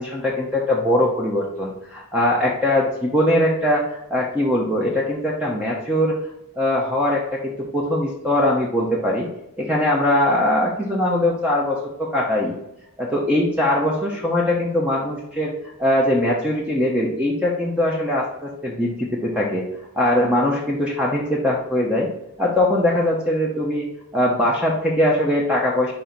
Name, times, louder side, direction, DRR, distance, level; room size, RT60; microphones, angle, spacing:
voice 1, 0.0-6.2 6.6-9.3 9.6-12.6 13.0-15.5 15.8-19.6 19.9-22.1 22.4-25.9, left 1 dB, 5° right, -3 dB, 0.9 m, -21 dB
5.4 x 5.1 x 4.4 m, 0.85 s
head